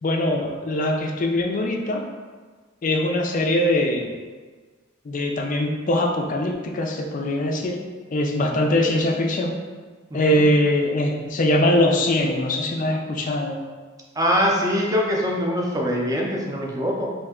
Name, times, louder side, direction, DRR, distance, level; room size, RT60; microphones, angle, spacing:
voice 1, 0.0-2.0 2.8-4.1 5.1-7.8 8.1-9.6 10.1-13.6, left 1 dB, 40° left, 2 dB, 0.4 m, -22 dB
voice 2, 10.1-10.4 14.2-17.1, equal, 15° right, -2 dB, 0.5 m, -23 dB
3.2 x 2.6 x 3.6 m, 1.4 s
head